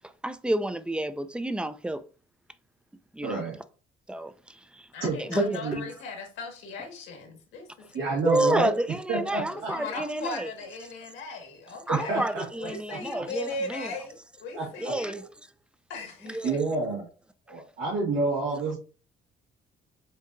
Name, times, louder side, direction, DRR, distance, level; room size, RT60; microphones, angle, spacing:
voice 1, 0.2-2.0 3.1-3.4 4.1-4.9 5.2-5.6 8.3-10.5 11.9-13.9 14.8-15.2 16.3-16.6, right 1 dB, 5° right, 0.5 m, -29 dB
voice 2, 3.2-3.6 5.0-5.8 7.9-8.7 9.1-9.7 11.9-12.4 12.9-13.2 14.5-14.9 16.4-17.1 17.5-18.8, right 3 dB, 80° right, 1.9 m, -29 dB
voice 3, 4.9-8.2 9.5-15.3 15.9-16.6, left 3 dB, 80° left, 1.7 m, -38 dB
7.2 x 2.7 x 2.6 m
supercardioid pair, 70°, 20 cm